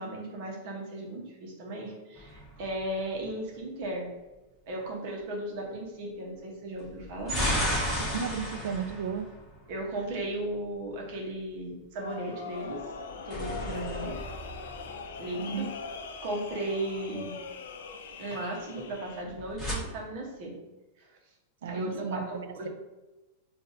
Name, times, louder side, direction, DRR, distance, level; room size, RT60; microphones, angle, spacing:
voice 1, 0.0-4.1 4.7-7.4 9.7-12.8 13.2-14.1 15.2-15.7 16.2-17.4 18.2-20.5 21.0-21.1 21.7-22.7, right 1 dB, 55° right, -1 dB, 1.0 m, -36 dB
sound 1, 2.1-3.2 6.8-10.1 12.9-15.4 19.2-19.7, equal, 5° left, 1.2 m, -34 dB
voice 2, 8.0-9.3 15.4-15.7 21.6-22.7, right 6 dB, 85° right, 9 dB, 0.3 m, -34 dB
sound 2, 12.0-19.2, left 5 dB, 85° left, 0.4 m, -41 dB
3.9 x 2.6 x 2.6 m, 1.1 s
supercardioid pair, 145°, 0 cm